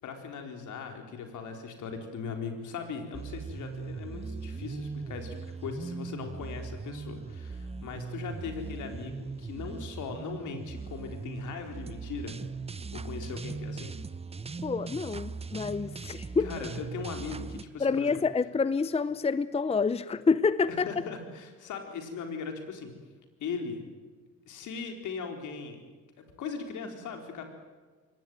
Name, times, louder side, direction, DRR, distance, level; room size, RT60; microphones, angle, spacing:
voice 1, 0.0-12.4 12.9-13.9 16.4-18.2 20.7-22.9 23.4-23.8 24.5-25.9 26.4-27.4, left 5 dB, 75° left, 4.2 m, -39 dB
sound 1, 3.1-17.6, right 4 dB, 20° right, 0.8 m, -39 dB
voice 2, 14.6-16.5 17.8-20.9, left 4 dB, 20° left, 0.7 m, -27 dB
23.0 x 18.5 x 9.2 m
cardioid pair, 90°, 30 cm